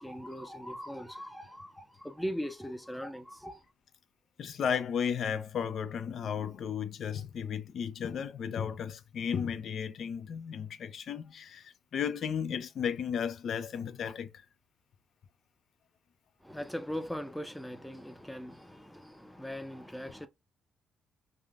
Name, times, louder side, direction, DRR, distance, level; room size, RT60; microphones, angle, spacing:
voice 1, 0.0-3.6 16.4-20.3, equal, 5° left, 0.6 m, -40 dB
voice 2, 4.4-14.3, left 7 dB, 60° left, 0.5 m, -34 dB
3.4 x 2.4 x 2.4 m
cardioid pair, 90°, 0 cm